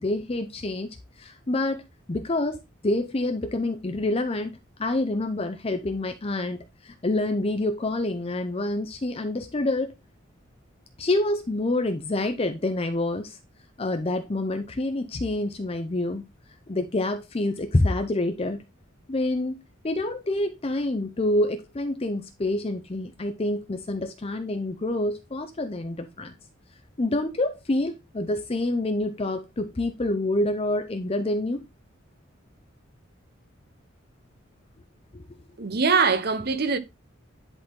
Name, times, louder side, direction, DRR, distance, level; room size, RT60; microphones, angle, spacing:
voice 1, 0.0-1.8 2.1-2.6 2.8-4.5 4.8-9.9 11.0-13.4 13.8-16.2 16.7-18.6 19.1-19.6 19.8-26.3 27.0-31.6 35.1-35.2, left 2 dB, 30° left, 0.6 m, -27 dB
voice 2, 35.6-36.8, right 5 dB, 50° right, 0.9 m, -22 dB
10.5 x 4.1 x 3.7 m
head